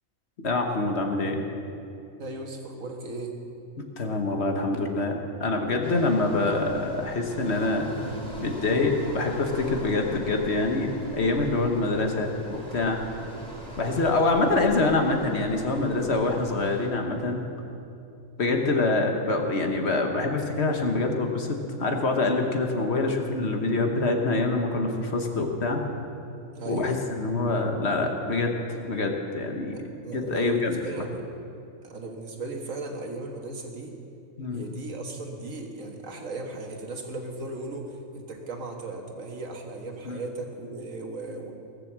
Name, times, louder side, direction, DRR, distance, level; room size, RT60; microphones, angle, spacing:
voice 1, 0.4-1.4 3.8-7.8 8.4-13.0 13.8-17.4 18.4-25.8 26.6-29.8 30.1-30.8 34.4-34.7 40.0-40.2, left 2 dB, 55° left, 3 dB, 1.5 m, -25 dB
voice 2, 2.2-3.4 11.8-11.9 13.8-14.0 18.5-18.7 26.5-26.9 29.6-31.2 31.8-34.0 34.5-41.6, right 3 dB, 70° right, 2 dB, 1.9 m, -37 dB
sound 1, 5.8-16.9, equal, 5° left, 2.8 m, -41 dB
18.0 x 7.4 x 7.5 m, 2.6 s
omnidirectional pair, 1.4 m